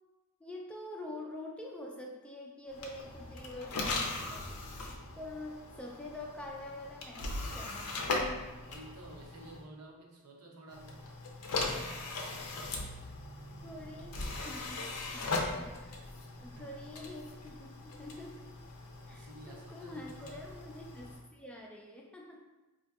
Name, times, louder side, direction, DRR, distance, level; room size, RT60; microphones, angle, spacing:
voice 1, 0.4-4.7 5.1-8.2 13.6-16.0 16.4-18.5 19.1-22.4, left 1 dB, 5° left, -1 dB, 0.3 m, -46 dB
sound 1, 2.7-9.6 10.7-21.2, left 2 dB, 90° left, 0.5 m, -39 dB
voice 2, 8.5-11.0 11.7-12.1 16.4-16.8 19.1-20.4, right 2 dB, 80° right, -1 dB, 0.7 m, -52 dB
4.6 x 2.6 x 2.3 m, 1.1 s
head